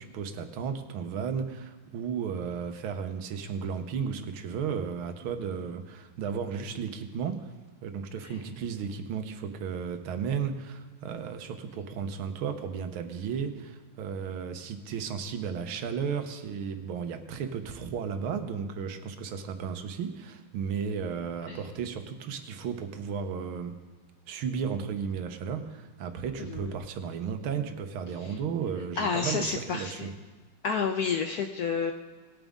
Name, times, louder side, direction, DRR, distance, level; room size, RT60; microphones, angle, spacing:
voice 1, 0.0-7.5 7.8-23.8 24.3-30.1, right 6 dB, 90° right, 8 dB, 1.8 m, -34 dB
voice 2, 26.4-26.7 28.2-28.3 29.0-30.1 30.6-31.9, left 5 dB, 70° left, 5 dB, 0.9 m, -30 dB
19.0 x 8.9 x 3.6 m, 1.4 s
omnidirectional pair, 2.2 m